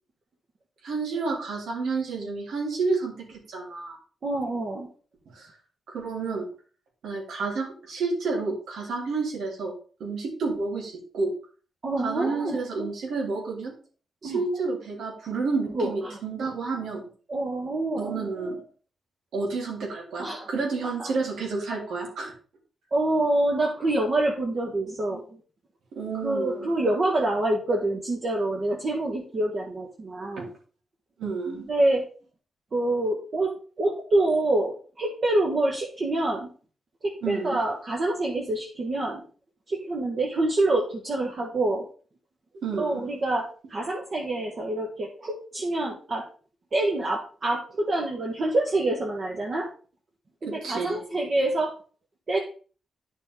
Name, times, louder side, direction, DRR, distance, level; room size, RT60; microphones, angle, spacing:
voice 1, 0.8-4.0 5.3-5.5 5.9-6.5 7.0-9.7 10.0-11.3 12.0-13.7 14.2-17.0 18.0-18.6 19.3-22.3 25.1-25.2 25.9-26.7 30.4-30.5 31.2-31.6 37.2-37.6 42.6-43.0 50.5-51.0, right 4 dB, 90° right, 0 dB, 3.5 m, -30 dB
voice 2, 4.2-4.9 11.8-12.6 14.2-14.4 15.7-16.2 17.3-18.1 20.2-20.5 21.0-21.1 22.9-25.4 26.2-30.5 31.5-32.1 32.7-33.5 33.8-36.5 37.0-39.2 39.7-41.9 42.8-46.2 46.7-49.7 50.4-51.7 52.3-52.4, right 2 dB, 35° right, -1 dB, 1.4 m, -26 dB
10.5 x 6.3 x 3.7 m, 0.39 s
wide cardioid pair, 165°, 0 cm